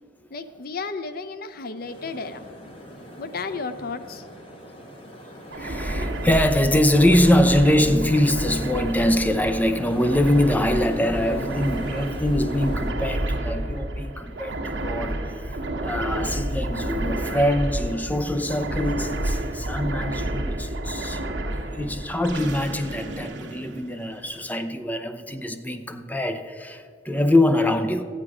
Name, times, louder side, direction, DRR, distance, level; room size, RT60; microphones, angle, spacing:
voice 1, 0.3-2.5 3.2-4.3, left 4 dB, 55° left, 11 dB, 0.6 m, -33 dB
sound 1, 1.8-12.9, equal, 30° left, 1.6 m, -42 dB
voice 2, 5.5-21.2 21.7-28.0, left 1 dB, 10° left, 8 dB, 0.6 m, -23 dB
sound 2, 5.5-24.4, right 1 dB, 75° right, 1.3 m, -30 dB
14.0 x 9.7 x 4.9 m, 2.3 s
head